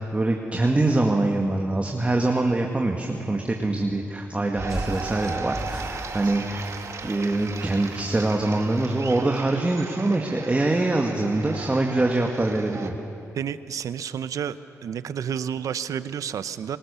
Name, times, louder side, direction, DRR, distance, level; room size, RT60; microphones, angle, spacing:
voice 1, 0.0-13.0, right 2 dB, 25° right, 2 dB, 2.0 m, -24 dB
sound 1, 4.6-8.9, right 1 dB, 5° right, 2.4 m, -38 dB
sound 2, 4.6-12.9, right 4 dB, 60° right, 2.0 m, -37 dB
voice 2, 13.3-14.6 14.8-16.8, right 8 dB, 75° right, 14 dB, 0.8 m, -30 dB
29.5 x 19.0 x 7.0 m, 2.7 s
cardioid pair, 65°, 6 cm